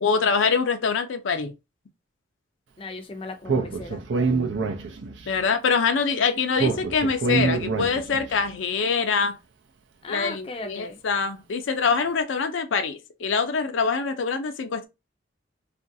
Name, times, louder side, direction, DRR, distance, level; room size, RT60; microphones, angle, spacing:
voice 1, 0.0-1.5 5.3-9.4 10.1-10.4 10.7-14.9, left 5 dB, 85° left, 0.5 m, -24 dB
voice 2, 2.8-4.0 10.0-11.0, left 3 dB, 30° left, 0.4 m, -36 dB
Speech, 3.5-5.3 6.6-8.3, right 4 dB, 80° right, 0.5 m, -25 dB
3.0 x 2.5 x 2.6 m
head